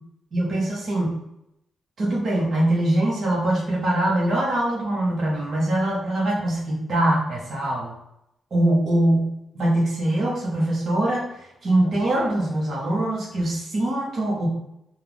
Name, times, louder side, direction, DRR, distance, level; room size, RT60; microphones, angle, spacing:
voice 1, 0.3-1.2 2.0-7.9 8.5-9.3 9.5-14.5, right 1 dB, 50° right, -5 dB, 1.3 m, -23 dB
4.4 x 2.5 x 3.5 m, 0.81 s
cardioid pair, 90°, 0 cm